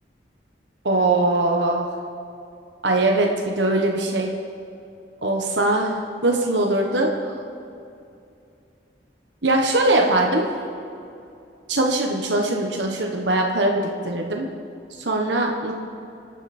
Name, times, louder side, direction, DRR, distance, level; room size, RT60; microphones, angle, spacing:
voice 1, 0.8-1.9 2.8-4.3 5.2-7.4 9.4-10.4 11.7-14.5 15.0-15.7, right 2 dB, 85° right, 1 dB, 1.4 m, -21 dB
29.0 x 9.9 x 4.4 m, 2.6 s
head